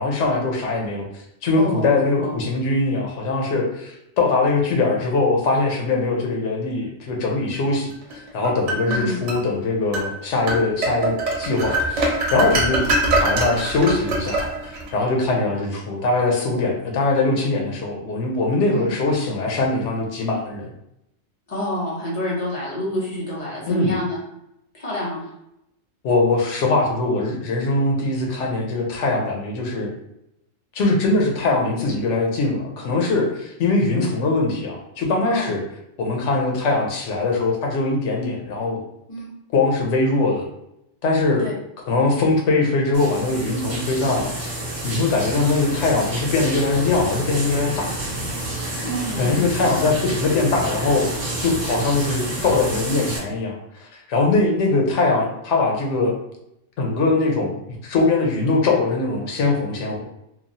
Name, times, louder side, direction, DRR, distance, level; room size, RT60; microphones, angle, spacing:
voice 1, 0.0-12.9 13.2-20.7 23.7-24.0 26.0-29.9 30.7-35.6 36.0-38.8 39.5-40.4 41.0-41.5 41.9-48.0 49.2-51.1 51.4-56.2 56.8-60.0, left 3 dB, 90° left, 0 dB, 1.0 m, -22 dB
voice 2, 1.6-2.3 8.8-9.2 18.7-18.9 21.5-24.2 24.7-25.2 35.2-35.5 39.1-39.3 41.4-41.5 48.8-49.9, left 1 dB, 35° left, -5 dB, 0.9 m, -28 dB
sound 1, 8.1-9.4 9.9-10.1 10.5-14.9, right 1 dB, 85° right, 1.0 m, -23 dB
sound 2, 42.9-53.2, right 1 dB, 30° right, 0.9 m, -29 dB
3.0 x 2.2 x 2.6 m, 0.82 s
omnidirectional pair, 1.2 m